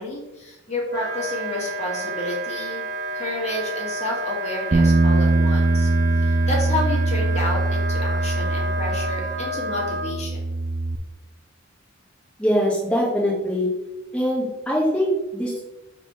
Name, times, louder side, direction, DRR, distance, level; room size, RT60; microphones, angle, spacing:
voice 1, 0.0-2.8 3.1-5.9 6.2-10.4, left 1 dB, 35° left, -3 dB, 1.7 m, -30 dB
Wind instrument woodwind instrument, 0.9-10.1, right 2 dB, 60° right, 0.8 m, -31 dB
Bass guitar, 4.7-11.0, right 2 dB, 25° right, 0.4 m, -22 dB
voice 2, 12.4-13.7 14.1-15.6, equal, 5° left, -6 dB, 1.0 m, -22 dB
5.1 x 3.4 x 5.5 m, 0.98 s
head